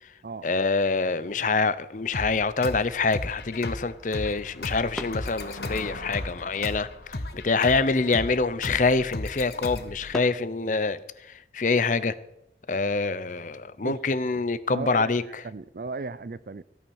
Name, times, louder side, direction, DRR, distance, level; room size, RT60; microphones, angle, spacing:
voice 1, 0.4-12.1 12.7-15.5, left 4 dB, 45° left, 0.7 m, -26 dB
sound 1, 1.2-11.2, equal, ahead, 0.6 m, -47 dB
sound 2, 2.1-10.1, left 2 dB, 65° left, 1.2 m, -36 dB
sound 3, 3.2-9.2, left 2 dB, 80° left, 2.5 m, -46 dB
voice 2, 14.7-15.1 15.4-16.6, right 3 dB, 55° right, 0.5 m, -35 dB
16.0 x 9.0 x 6.4 m
head